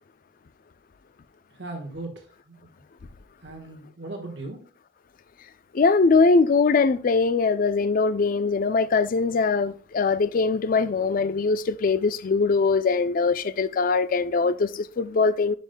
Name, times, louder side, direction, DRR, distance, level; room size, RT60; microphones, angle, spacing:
voice 1, 1.6-2.8 3.4-4.6, right 2 dB, 70° right, 1.3 m, -38 dB
voice 2, 5.7-15.5, left 4 dB, 50° left, 0.4 m, -22 dB
11.0 x 5.3 x 2.2 m
head